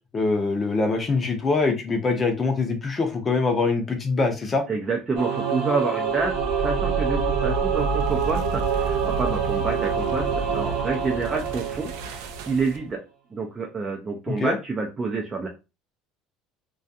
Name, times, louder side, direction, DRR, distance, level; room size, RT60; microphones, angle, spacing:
voice 1, 0.1-4.6 14.3-14.6, left 3 dB, 30° left, 5 dB, 0.6 m, -23 dB
voice 2, 4.7-13.0 13.3-15.5, right 4 dB, 25° right, 1 dB, 0.5 m, -28 dB
Singing / Musical instrument, 5.2-12.6, right 7 dB, 65° right, 0.8 m, -27 dB
sound 1, 6.1-12.9, right 2 dB, 85° right, 0.4 m, -31 dB
2.3 x 2.3 x 2.6 m, 0.28 s
supercardioid pair, 105°, 0 cm